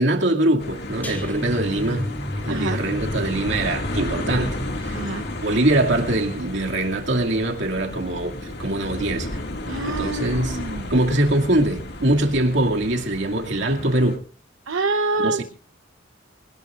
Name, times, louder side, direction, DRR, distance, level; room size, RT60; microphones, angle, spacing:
voice 1, 0.0-2.1 2.4-5.0 5.4-9.3 9.9-10.6 10.9-14.2 15.2-15.4, right 1 dB, 65° right, 2.4 m, -23 dB
sound 1, 0.6-14.2, left 1 dB, 60° left, 2.2 m, -32 dB
sound 2, 1.0-8.1 8.5-8.8 9.1-9.2, equal, 10° left, 2.7 m, -33 dB
voice 2, 2.5-2.8 4.9-5.2 9.7-10.9 14.7-15.4, right 3 dB, 85° right, 1.0 m, -26 dB
25.0 x 18.0 x 2.5 m
head